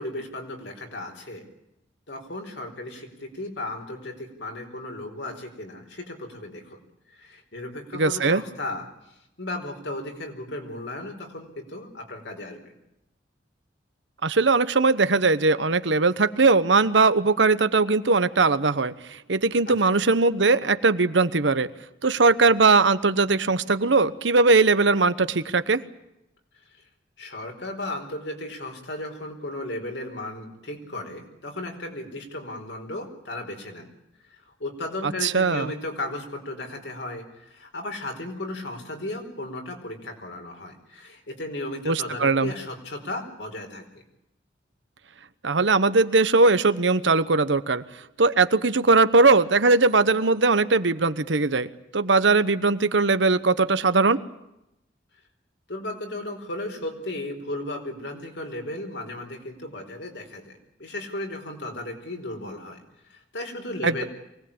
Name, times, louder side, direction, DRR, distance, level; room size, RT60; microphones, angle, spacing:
voice 1, 0.0-1.4 2.1-6.8 7.1-8.9 9.4-12.7 19.7-19.8 27.2-33.9 34.3-44.0 55.7-60.5 60.8-62.8 63.1-64.0, left 1 dB, 75° left, 3 dB, 4.7 m, -35 dB
voice 2, 8.0-8.4 14.2-18.9 19.3-21.7 22.0-25.8 35.2-35.7 41.9-42.5 45.4-47.8 48.2-54.2 63.8-64.0, right 3 dB, 80° right, 13 dB, 1.1 m, -20 dB
24.0 x 18.5 x 8.7 m, 0.88 s
head